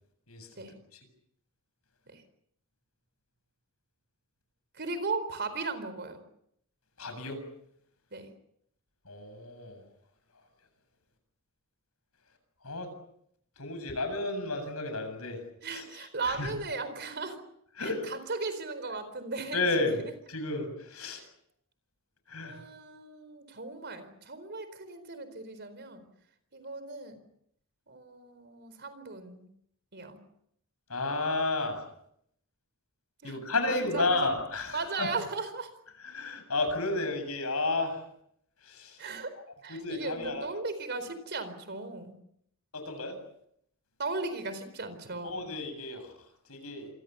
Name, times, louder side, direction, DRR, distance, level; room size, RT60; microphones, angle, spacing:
voice 1, 0.3-0.7 0.9-1.0 7.0-7.4 9.0-9.8 12.6-12.9 13.6-15.4 15.7-16.5 17.8-18.1 19.5-20.0 20.3-21.2 22.3-22.6 30.9-31.9 33.2-35.1 36.0-38.1 38.6-39.1 39.7-40.5 42.7-43.2 45.2-46.9, left 2 dB, 80° left, 7 dB, 7.7 m, -32 dB
voice 2, 4.7-6.2 8.1-8.3 15.6-17.4 18.1-19.6 22.4-26.0 26.5-27.2 27.9-29.5 29.9-30.2 33.2-33.4 33.7-34.2 34.7-35.7 39.0-39.3 39.6-42.1 44.0-45.4, right 3 dB, 50° right, 11 dB, 4.3 m, -37 dB
27.5 x 23.5 x 7.0 m, 0.73 s
head